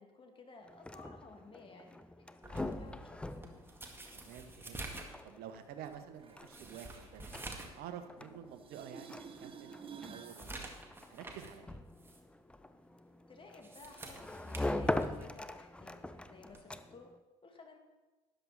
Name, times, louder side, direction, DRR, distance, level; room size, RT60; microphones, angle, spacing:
voice 1, 0.0-3.2 13.3-17.1 17.4-17.8, left 3 dB, 25° left, 3 dB, 2.4 m, -56 dB
sound 1, 0.6-17.2, left 1 dB, 5° left, 0.6 m, -43 dB
sound 2, 2.4-7.8 8.2-8.3 8.8-8.9 9.4-11.6 12.0-12.2 13.4-15.4 16.5-16.7, right 2 dB, 10° right, 1.9 m, -49 dB
voice 2, 4.1-4.9 5.2-7.3 7.7-9.7 10.1-10.7 11.1-11.8, right 9 dB, 55° right, 8 dB, 1.3 m, -49 dB
sound 3, 6.2-8.3 8.5-10.4 16.2-16.3, right 6 dB, 30° right, 1.1 m, -52 dB
13.0 x 10.5 x 4.2 m, 1.2 s
hypercardioid pair, 70°, 19 cm